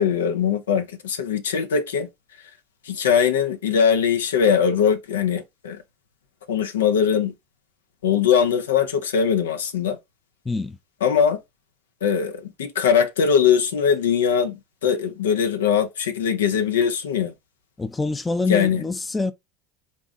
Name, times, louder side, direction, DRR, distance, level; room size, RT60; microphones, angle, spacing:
voice 1, 0.0-2.1 2.9-5.8 6.5-7.3 8.0-10.0 11.0-11.4 12.0-17.3 18.5-18.8, left 7 dB, 80° left, 0.6 m, -21 dB
voice 2, 10.5-10.8 17.8-19.3, left 3 dB, 15° left, 0.5 m, -25 dB
3.7 x 2.3 x 3.9 m
hypercardioid pair, 75°, 0 cm